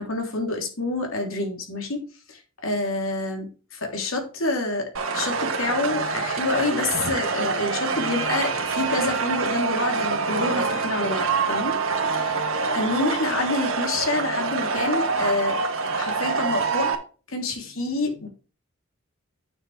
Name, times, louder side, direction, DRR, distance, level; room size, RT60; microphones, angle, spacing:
voice 1, 0.0-3.5 3.8-11.8 12.1-12.3 12.7-15.6 16.0-17.0 17.3-18.3, left 2 dB, 75° left, 2 dB, 3.2 m, -27 dB
sound 1, 4.9-16.9, right 4 dB, 75° right, 1.9 m, -26 dB
8.9 x 7.7 x 3.3 m, 0.35 s
head